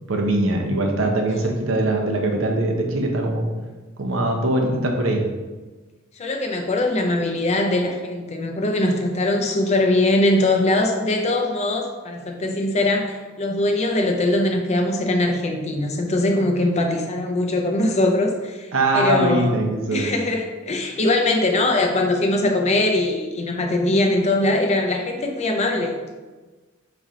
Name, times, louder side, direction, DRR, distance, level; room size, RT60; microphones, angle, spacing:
voice 1, 0.1-3.5 4.0-5.2 18.7-20.1, right 1 dB, 65° right, 2 dB, 0.7 m, -21 dB
voice 2, 6.2-19.6 19.9-26.0, left 2 dB, 30° left, 3 dB, 0.5 m, -21 dB
4.2 x 3.2 x 3.6 m, 1.3 s
head